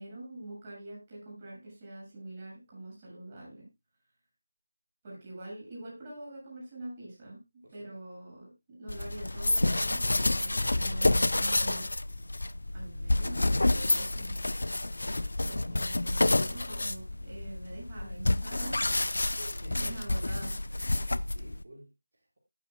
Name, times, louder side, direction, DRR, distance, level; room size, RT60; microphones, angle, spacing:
voice 1, 0.0-3.7 5.0-11.8 12.7-14.5 15.4-18.8 19.3-20.6, right 1 dB, 25° right, -4 dB, 7.4 m, -44 dB
voice 2, 7.6-8.0 19.4-20.1 20.9-22.4, right 1 dB, 60° right, -2 dB, 4.8 m, -52 dB
sound 1, 8.9-21.6, left 2 dB, 70° left, 0.7 m, -29 dB
19.5 x 7.9 x 2.2 m, 0.22 s
figure-of-eight pair, 170°, 0 cm